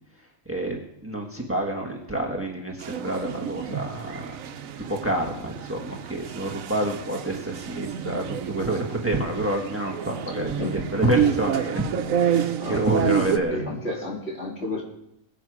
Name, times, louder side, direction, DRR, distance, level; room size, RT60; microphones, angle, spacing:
voice 1, 0.4-4.4 4.8-13.6, right 1 dB, 10° right, 1 dB, 1.6 m, -28 dB
sound 1, 2.8-13.4, right 9 dB, 85° right, 1.1 m, -29 dB
voice 2, 12.6-14.9, left 2 dB, 50° left, -1 dB, 2.9 m, -31 dB
21.5 x 7.8 x 4.9 m, 0.80 s
omnidirectional pair, 1.4 m